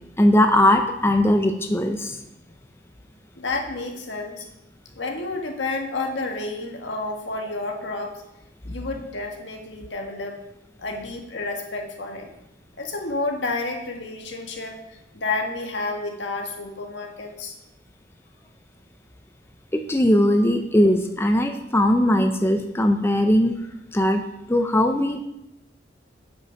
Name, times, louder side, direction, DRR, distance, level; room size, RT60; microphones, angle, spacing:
voice 1, 0.2-2.2 19.7-23.5 23.9-24.2 24.5-25.2, left 1 dB, 15° left, 5 dB, 0.5 m, -19 dB
voice 2, 3.3-4.4 4.9-8.2 8.6-10.4 10.8-12.3 12.8-17.6, left 3 dB, 75° left, 2 dB, 1.6 m, -30 dB
8.4 x 6.1 x 5.7 m, 0.88 s
head